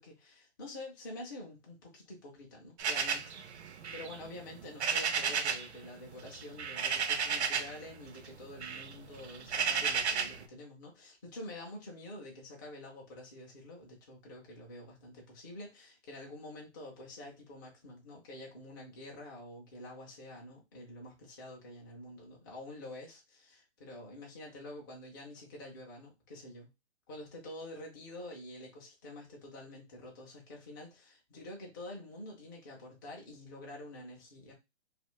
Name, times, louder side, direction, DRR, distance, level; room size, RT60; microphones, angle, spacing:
voice 1, 0.0-3.4 3.7-26.7 27.1-34.5, left 1 dB, 20° left, -2 dB, 0.5 m, -48 dB
sound 1, 2.8-5.7 6.0-7.8 8.2-10.4, right 6 dB, 70° right, 0.6 m, -33 dB
2.4 x 2.4 x 3.0 m, 0.23 s
hypercardioid pair, 150°, 35 cm